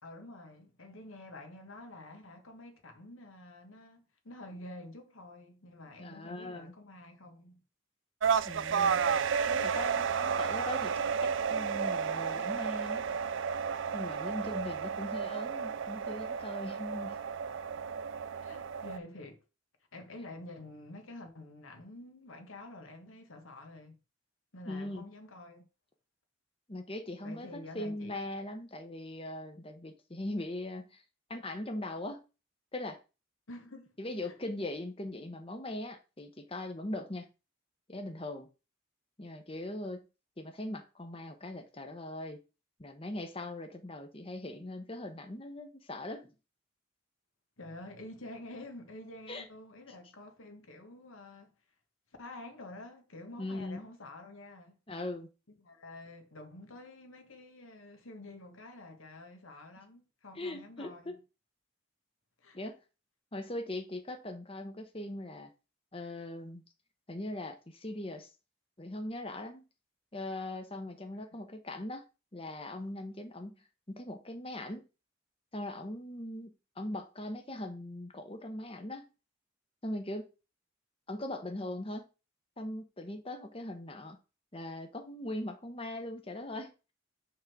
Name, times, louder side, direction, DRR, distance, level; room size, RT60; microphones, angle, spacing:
voice 1, 0.0-7.6 18.4-19.4 19.9-23.9 24.5-25.7 27.2-28.1 33.5-34.0 34.2-34.3 47.6-51.5 52.2-54.8 55.5-61.1 62.4-62.6 71.1-71.4, left 1 dB, 80° left, 1.6 m, -48 dB
voice 2, 6.0-6.7 8.4-13.0 13.9-17.2 24.6-25.1 26.7-31.0 31.3-32.2 32.7-33.0 34.0-37.3 37.9-38.5 39.2-40.0 40.4-42.4 42.8-46.3 49.3-49.5 53.4-53.9 54.9-55.3 60.3-61.1 62.5-62.8 63.3-65.5 65.9-66.6 67.1-68.3 68.8-69.7 70.1-72.0 72.3-73.6 73.9-74.9 75.5-79.1 79.8-80.3 81.1-82.1 82.6-84.2 84.5-86.9, left 1 dB, 25° left, 1.0 m, -40 dB
sound 1, 8.2-19.0, right 6 dB, 65° right, 0.4 m, -32 dB
6.3 x 3.8 x 6.1 m
head